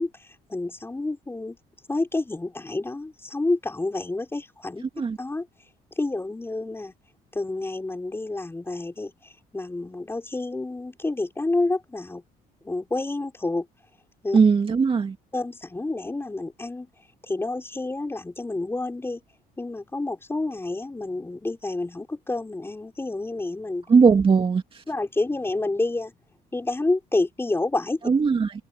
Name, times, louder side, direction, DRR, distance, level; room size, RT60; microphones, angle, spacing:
voice 1, 0.0-1.6 1.9-4.8 5.2-5.5 6.0-6.9 7.3-12.2 12.6-13.7 14.2-14.4 15.3-16.9 17.2-19.2 19.6-23.9 24.9-26.1 26.5-28.0, left 2 dB, 15° left, 5.4 m, -29 dB
voice 2, 14.3-15.2 23.9-24.6 28.1-28.5, right 5 dB, 30° right, 2.4 m, -18 dB
cardioid pair, 110°, 17 cm